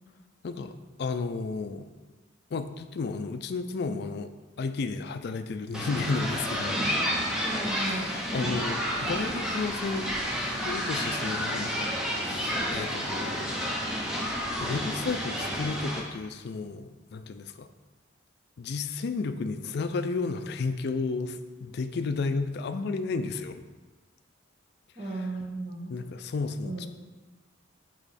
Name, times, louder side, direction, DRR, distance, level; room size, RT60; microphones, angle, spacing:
voice 1, 0.4-1.9 2.5-4.3 4.6-6.8 7.8-10.1 10.6-11.9 12.3-13.6 14.6-17.7 18.6-23.6 25.9-26.9, left 4 dB, 55° left, 10 dB, 0.4 m, -32 dB
sound 1, 5.7-16.0, equal, 5° right, 0.8 m, -30 dB
voice 2, 7.4-8.2 24.9-26.0 26.6-26.9, right 2 dB, 30° right, -3 dB, 1.3 m, -35 dB
8.2 x 3.0 x 4.1 m, 1.2 s
head